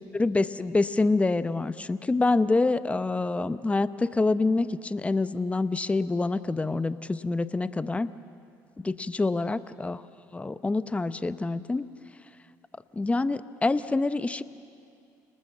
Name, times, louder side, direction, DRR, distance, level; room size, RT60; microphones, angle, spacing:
voice 1, 0.1-8.1 8.8-10.0 10.3-11.9 12.9-14.4, left 3 dB, 15° left, 14 dB, 0.8 m, -26 dB
28.5 x 20.0 x 7.4 m, 2.4 s
supercardioid pair, 90°, 8 cm